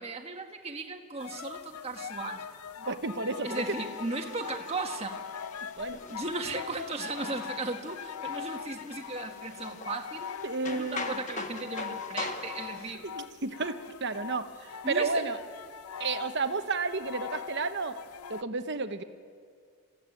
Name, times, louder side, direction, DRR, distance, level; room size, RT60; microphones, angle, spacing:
voice 1, 0.0-2.5 3.4-5.2 6.1-10.3 10.6-13.0 14.8-15.2, right 3 dB, 25° right, 3 dB, 1.5 m, -36 dB
sound 1, 1.2-18.4, left 7 dB, 85° left, 0.6 m, -42 dB
voice 2, 2.9-3.8 5.8-6.0 10.4-11.2 13.0-15.4 16.0-18.0 18.3-19.0, right 4 dB, 50° right, 9 dB, 1.1 m, -32 dB
sound 2, 3.4-12.9, left 3 dB, 35° left, 1.3 m, -43 dB
27.5 x 15.0 x 9.2 m, 2.1 s
head